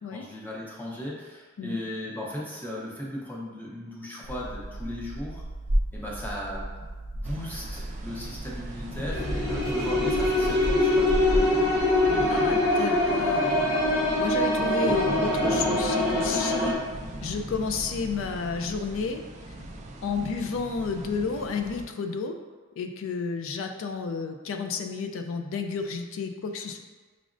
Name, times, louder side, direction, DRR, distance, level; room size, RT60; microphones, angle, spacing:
voice 1, 0.1-5.4 5.9-6.7 7.1-11.6, left 1 dB, 10° left, -5 dB, 0.7 m, -37 dB
sound 1, 4.2-12.3, right 1 dB, 80° right, 0.6 m, -33 dB
sound 2, 7.2-21.9, right 1 dB, 35° right, 0.4 m, -39 dB
sound 3, 9.1-16.7, left 1 dB, 85° left, 0.9 m, -24 dB
voice 2, 12.3-13.8 14.2-16.8 17.2-19.2 20.0-22.4 22.8-26.8, left 5 dB, 65° left, 5 dB, 0.3 m, -31 dB
5.9 x 2.1 x 2.5 m, 1.3 s
head